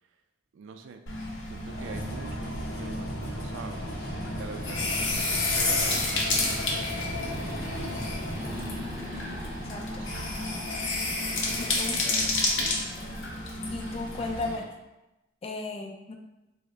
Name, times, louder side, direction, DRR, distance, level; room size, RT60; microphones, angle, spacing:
voice 1, 0.5-1.0 1.4-3.9 4.2-7.5 9.9-10.3 11.5-12.8, right 4 dB, 85° right, 7 dB, 0.3 m, -45 dB
sound 1, 1.1-14.6, left 2 dB, 85° left, 0.6 m, -31 dB
sound 2, 1.5-9.5, equal, 55° left, 0.7 m, -38 dB
sound 3, 3.7-14.7, equal, 15° right, 0.6 m, -42 dB
voice 2, 9.5-10.1 11.6-12.0 13.7-14.7 15.4-16.1, left 2 dB, 30° left, 3 dB, 0.4 m, -35 dB
3.6 x 2.1 x 3.3 m, 0.98 s
head